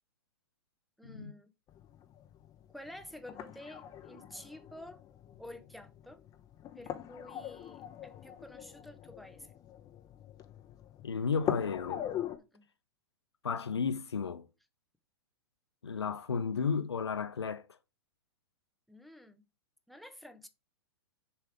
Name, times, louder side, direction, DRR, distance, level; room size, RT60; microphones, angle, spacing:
voice 1, 1.0-1.5 2.7-5.0 5.4-6.2 6.8-9.5 12.5-12.7 18.9-19.4 19.9-20.5, left 1 dB, ahead, 0.8 m, -50 dB
sound 1, 1.7-12.4, left 11 dB, 25° left, 0.9 m, -43 dB
voice 2, 11.0-12.0 13.4-14.5 15.8-17.8, left 5 dB, 85° left, 0.6 m, -33 dB
6.8 x 3.4 x 4.8 m
figure-of-eight pair, 105°, 14 cm